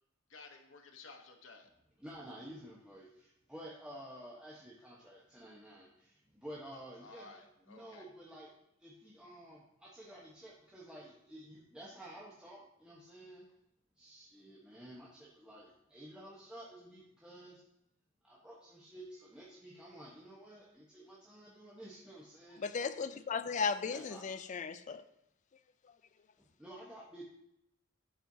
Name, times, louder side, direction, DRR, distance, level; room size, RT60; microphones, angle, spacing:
voice 1, 0.3-1.7 7.0-8.0, left 3 dB, 80° left, 1.0 m, -54 dB
voice 2, 2.0-8.5 8.8-13.4 14.0-17.6 18.2-22.7 23.8-24.3 26.4-27.2, right 1 dB, 5° right, 1.0 m, -52 dB
voice 3, 22.6-25.0, left 5 dB, 40° left, 0.4 m, -36 dB
12.0 x 4.4 x 2.7 m
head